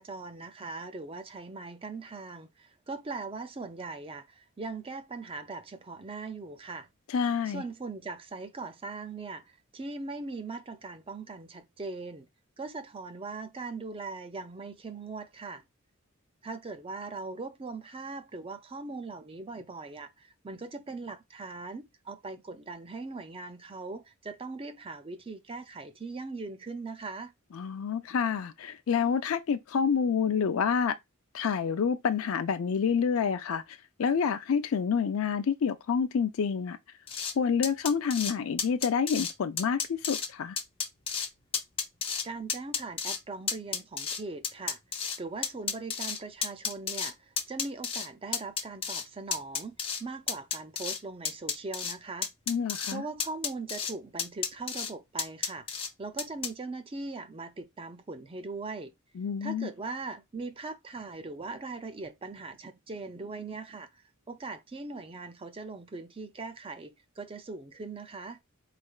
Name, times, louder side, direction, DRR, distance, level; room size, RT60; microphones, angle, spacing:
voice 1, 0.0-6.9 7.5-12.3 12.6-15.6 16.4-27.3 42.2-44.8 45.2-49.7 50.0-52.3 52.9-58.9 59.4-64.0 64.3-68.4, right 3 dB, 25° right, 0.5 m, -40 dB
voice 2, 7.1-7.6 27.5-31.0 31.3-36.8 37.4-40.6 52.5-53.0 59.2-59.7, left 6 dB, 65° left, 0.4 m, -28 dB
sound 1, 37.1-37.3 37.6-38.3 38.6-39.3 39.6-40.3 40.6-41.3 41.5-42.2 42.5-43.2 43.5-45.2 45.4-47.1 47.4-48.1 48.3-49.0 49.3-50.0 50.3-51.0 51.2-51.9 52.2-52.9 53.2-53.9 54.2-54.9 55.2-55.9 56.2-56.5, left 6 dB, 25° left, 0.7 m, -32 dB
4.6 x 3.2 x 2.3 m
head